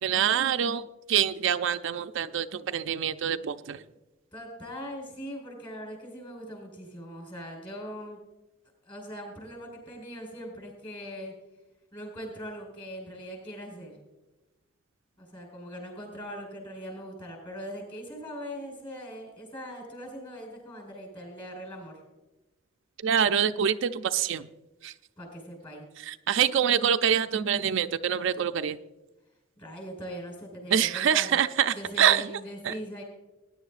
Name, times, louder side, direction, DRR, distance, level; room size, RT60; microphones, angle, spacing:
voice 1, 0.0-3.8 23.0-24.5 24.8-24.9 26.0-28.8 30.7-32.3 32.6-32.7, right 8 dB, 65° right, 9 dB, 0.4 m, -25 dB
voice 2, 4.3-8.2 8.8-11.3 11.9-13.9 15.2-22.0 25.2-25.8 29.6-31.4 31.7-33.0, equal, 25° left, 1 dB, 5.0 m, -41 dB
19.5 x 10.5 x 2.5 m, 1.0 s
head